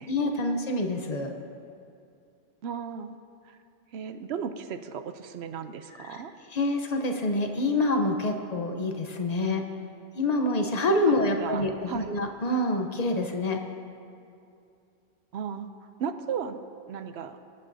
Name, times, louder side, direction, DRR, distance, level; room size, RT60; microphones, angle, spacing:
voice 1, 0.1-1.4 6.0-6.2 6.5-9.6 10.1-13.6, left 2 dB, 40° left, 4 dB, 0.9 m, -27 dB
voice 2, 2.6-3.2 3.4-3.6 3.9-6.3 11.1-11.2 11.4-12.1 15.3-15.7 16.0-17.4, right 7 dB, 75° right, 10 dB, 0.9 m, -35 dB
22.0 x 9.0 x 2.7 m, 2.5 s
omnidirectional pair, 1.1 m